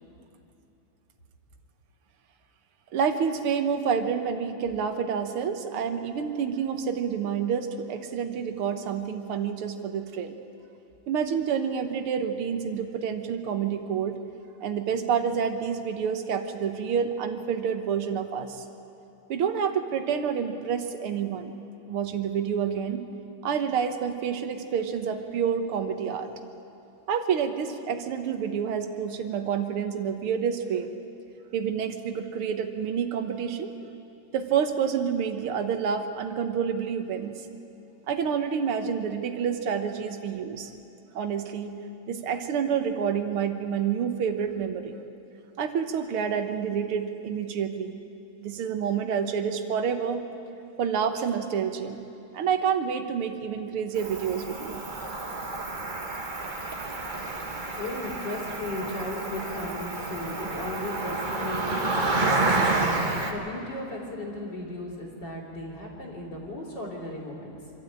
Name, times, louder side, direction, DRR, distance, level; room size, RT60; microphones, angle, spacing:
voice 1, 2.9-10.4 11.1-14.2 14.6-18.6 19.3-21.6 21.9-23.0 23.4-26.3 27.1-30.9 31.5-33.7 34.3-37.4 38.1-40.7 41.1-41.8 42.1-45.0 45.6-47.9 48.4-50.2 50.8-52.0 52.3-54.8, right 7 dB, 85° right, 7 dB, 2.0 m, -28 dB
Cricket, 54.0-63.3, right 2 dB, 25° right, 1.2 m, -29 dB
voice 2, 57.4-67.6, left 1 dB, 55° left, -2 dB, 3.8 m, -36 dB
25.5 x 12.5 x 8.9 m, 2.9 s
omnidirectional pair, 2.4 m